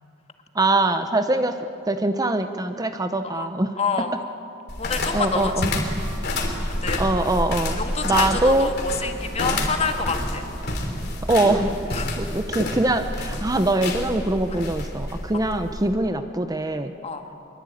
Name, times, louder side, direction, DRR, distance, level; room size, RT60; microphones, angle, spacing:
voice 1, 0.5-1.6 1.9-4.1 5.1-5.7 7.0-8.7 11.3-11.7 12.2-16.9, right 2 dB, 20° right, 8 dB, 0.8 m, -23 dB
voice 2, 3.8-4.1 4.8-5.9 6.7-7.0 7.8-10.5 11.9-12.3 17.0-17.3, left 5 dB, 35° left, 5 dB, 1.9 m, -28 dB
sound 1, 4.7-15.9, left 1 dB, 55° left, 3.5 m, -29 dB
24.0 x 23.0 x 9.3 m, 2.6 s
head